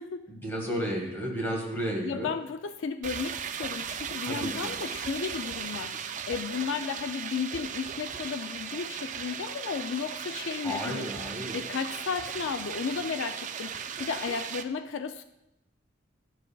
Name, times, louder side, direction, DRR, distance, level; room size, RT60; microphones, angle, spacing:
voice 1, 0.3-2.3 4.3-4.7 10.6-11.6, equal, 10° left, -1 dB, 1.7 m, -33 dB
voice 2, 2.0-11.0 11.5-15.2, left 5 dB, 80° left, 9 dB, 0.4 m, -34 dB
sound 1, 3.0-14.6, right 7 dB, 40° right, 0.4 m, -37 dB
12.0 x 7.3 x 2.3 m, 0.88 s
head